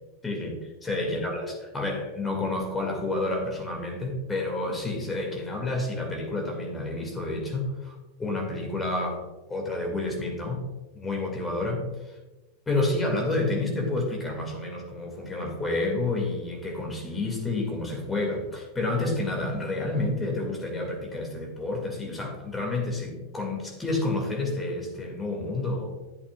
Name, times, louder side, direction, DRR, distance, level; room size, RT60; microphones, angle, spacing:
voice 1, 0.2-0.5 0.8-10.6 10.9-12.2 12.7-25.9, left 2 dB, 15° left, 1 dB, 2.2 m, -29 dB
11.0 x 8.2 x 2.4 m, 1.1 s
figure-of-eight pair, 90°, 0 cm